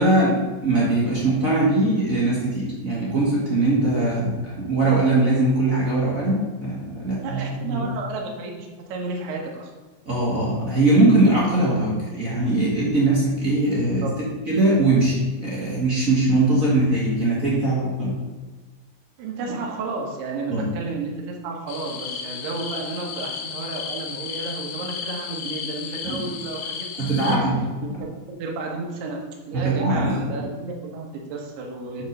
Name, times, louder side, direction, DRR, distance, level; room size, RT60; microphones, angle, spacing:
voice 1, 0.0-7.8 10.0-14.0 14.5-18.2 20.5-20.7 26.0-26.2 27.0-27.6 29.5-30.2, right 2 dB, 40° right, -6 dB, 1.1 m, -21 dB
voice 2, 4.0-4.3 7.2-9.7 13.8-14.2 19.2-26.9 27.3-27.4 27.8-28.1 28.4-32.0, right 3 dB, 70° right, 1 dB, 3.2 m, -32 dB
sound 1, 21.7-27.4, left 7 dB, 85° left, 3.2 m, -33 dB
8.5 x 4.8 x 6.6 m, 1.3 s
omnidirectional pair, 5.0 m